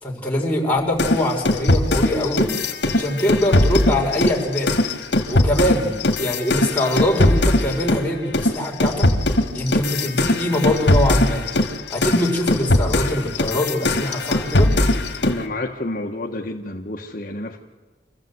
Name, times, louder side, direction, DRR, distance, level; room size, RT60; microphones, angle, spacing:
voice 1, 0.0-2.5 2.9-4.7 5.3-9.1 9.5-11.4 11.9-14.7, left 1 dB, 10° left, -4 dB, 4.6 m, -23 dB
sound 1, 1.0-8.1 8.3-15.4, left 1 dB, 75° left, 2.1 m, -20 dB
voice 2, 15.2-17.6, left 2 dB, 50° left, 1 dB, 1.4 m, -29 dB
27.0 x 15.0 x 8.0 m, 1.3 s
head